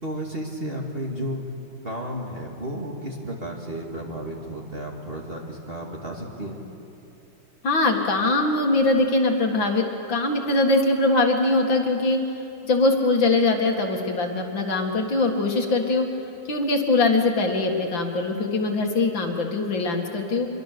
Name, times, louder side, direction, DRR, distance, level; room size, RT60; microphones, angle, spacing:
voice 1, 0.0-1.4 1.8-6.6, equal, 25° right, -1 dB, 2.4 m, -33 dB
voice 2, 7.6-12.2 12.6-16.1 16.5-20.5, left 2 dB, 65° left, 2 dB, 2.5 m, -22 dB
25.5 x 23.0 x 6.7 m, 2.8 s
omnidirectional pair, 2.3 m